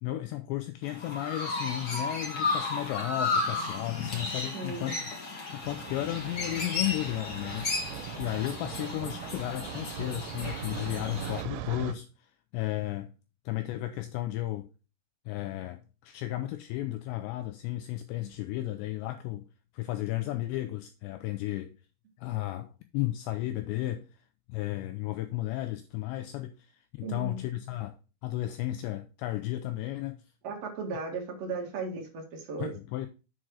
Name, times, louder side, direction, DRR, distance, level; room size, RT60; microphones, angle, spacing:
voice 1, 0.0-5.0 5.5-7.9 8.2-12.1 12.5-13.1 13.5-14.7 15.3-19.5 19.7-21.7 22.2-24.1 24.5-26.5 27.0-28.0 28.2-30.2 32.6-33.1, left 15 dB, 85° left, 2.5 m, -34 dB
Chirp tweet, 0.8-11.4, left 3 dB, 70° left, 1.0 m, -34 dB
voice 2, 4.5-5.0 27.0-27.4 30.4-32.7, right 4 dB, 50° right, 1.9 m, -36 dB
sound 1, 5.6-11.9, right 12 dB, 85° right, 3.2 m, -40 dB
7.4 x 6.3 x 4.7 m
omnidirectional pair, 5.6 m